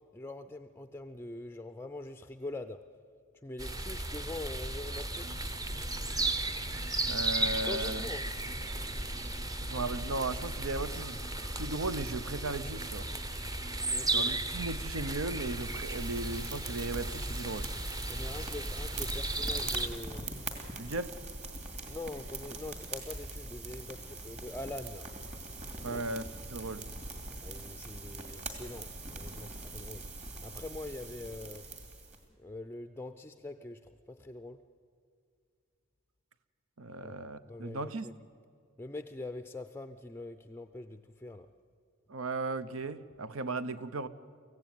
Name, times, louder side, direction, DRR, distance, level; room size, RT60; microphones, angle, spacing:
voice 1, 0.0-2.9 3.4-5.3 7.6-8.2 13.9-14.3 18.1-20.3 21.9-25.1 25.9-26.1 27.4-30.0 30.4-31.7 32.4-34.6 37.0-37.2 37.5-38.1 38.8-41.5, left 2 dB, 10° left, 0.5 m, -43 dB
sound 1, 3.6-19.9, right 2 dB, 15° right, 0.7 m, -35 dB
sound 2, 5.2-18.1, right 2 dB, 55° right, 1.6 m, -54 dB
voice 2, 7.1-8.0 9.6-11.2 11.6-13.1 14.1-17.7 20.8-21.1 25.8-26.2 26.5-26.9 36.8-38.1 42.1-44.1, right 2 dB, 80° right, 0.9 m, -36 dB
sound 3, 15.4-32.2, right 3 dB, 35° right, 2.6 m, -43 dB
24.0 x 16.0 x 9.3 m
head